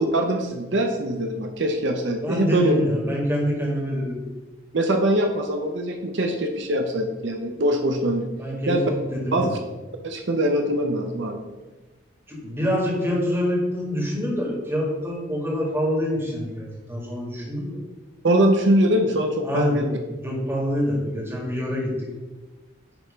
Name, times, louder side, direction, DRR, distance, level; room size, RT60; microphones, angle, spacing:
voice 1, 0.1-2.7 4.7-8.3 8.7-8.9 9.3-9.6 10.0-11.4 18.2-20.0, right 1 dB, 75° right, 5 dB, 0.7 m, -22 dB
voice 2, 2.2-4.2 8.4-8.8 9.1-9.5 12.3-17.8 19.4-19.9 20.2-21.9, equal, 10° right, -4 dB, 1.9 m, -26 dB
9.8 x 3.3 x 5.0 m, 1.2 s
head